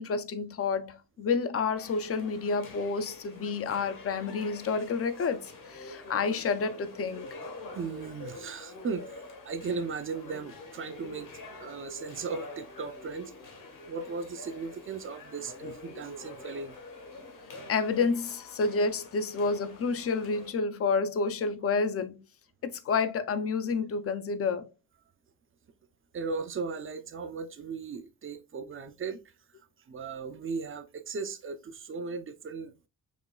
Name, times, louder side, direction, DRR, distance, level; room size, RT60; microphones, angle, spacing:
voice 1, 0.0-7.3 17.7-22.2 22.6-24.7, left 4 dB, 40° left, 0.4 m, -29 dB
sound 1, 1.8-20.5, left 2 dB, 65° left, 1.3 m, -46 dB
voice 2, 7.7-9.1 9.4-11.3 11.5-13.3 13.9-16.8 26.1-29.2 29.9-32.9, right 4 dB, 35° right, 0.5 m, -37 dB
5.0 x 3.1 x 2.2 m
wide cardioid pair, 150°, 35 cm